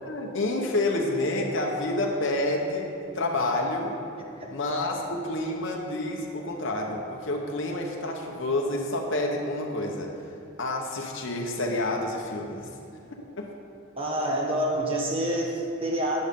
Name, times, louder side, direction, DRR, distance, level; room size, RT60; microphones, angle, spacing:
voice 1, 0.0-4.0 4.5-10.1 10.6-12.6 13.4-13.5, left 2 dB, 60° left, 0 dB, 1.0 m, -28 dB
voice 2, 14.0-16.2, right 1 dB, 25° right, -1 dB, 1.0 m, -27 dB
10.5 x 9.8 x 3.7 m, 2.5 s
head